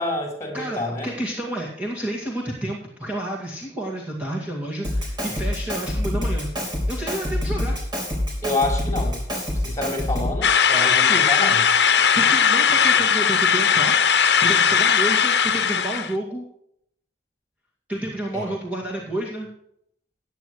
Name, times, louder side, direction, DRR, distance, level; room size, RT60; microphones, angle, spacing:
voice 1, 0.0-1.1 8.4-9.2 9.5-11.6 18.3-18.6, left 2 dB, 20° left, 1 dB, 3.8 m, -28 dB
voice 2, 0.5-7.8 10.7-11.3 12.1-16.4 17.9-19.5, right 1 dB, 10° right, -4 dB, 2.1 m, -30 dB
Drum kit, 4.8-10.5, left 1 dB, 25° right, 4.0 m, -26 dB
sound 1, 10.4-16.1, left 7 dB, 70° left, 0.8 m, -18 dB
16.0 x 9.3 x 3.2 m, 0.71 s
head